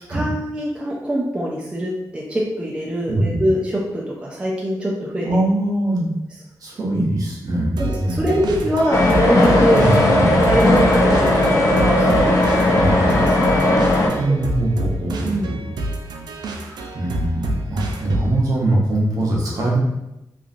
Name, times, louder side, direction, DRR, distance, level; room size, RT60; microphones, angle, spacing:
voice 1, 0.1-5.3 7.8-9.8 10.4-12.8 13.2-13.5 14.3-14.4 15.2-15.6, equal, 15° right, -4 dB, 0.5 m, -23 dB
voice 2, 3.1-3.4 5.2-6.1 6.6-8.7 9.7-9.9 10.2-10.3 12.7-13.0 14.2-15.8 16.5-19.8, right 1 dB, 55° right, -4 dB, 0.9 m, -22 dB
sound 1, 7.8-18.4, right 1 dB, 90° right, 0.3 m, -28 dB
sound 2, 8.9-14.1, left 1 dB, 50° left, 0.7 m, -16 dB
3.1 x 2.4 x 2.5 m, 0.91 s
wide cardioid pair, 120°, 7 cm